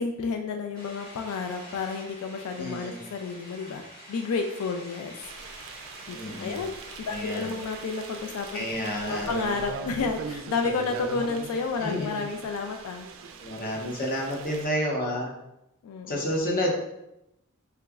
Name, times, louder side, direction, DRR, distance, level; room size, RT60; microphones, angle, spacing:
voice 1, 0.0-5.2 6.1-6.7 7.1-8.6 9.1-13.1 15.8-16.2, left 4 dB, 85° left, 4 dB, 0.3 m, -31 dB
sound 1, 0.7-9.7, equal, 20° left, 1.4 m, -47 dB
voice 2, 2.6-3.0 6.1-6.6 7.1-7.5 8.5-9.3 11.8-12.3 13.4-15.3 16.1-16.7, equal, 40° left, -1 dB, 0.7 m, -30 dB
sound 2, 5.2-14.7, right 4 dB, 65° right, 0.3 m, -41 dB
3.4 x 2.9 x 2.3 m, 0.87 s
head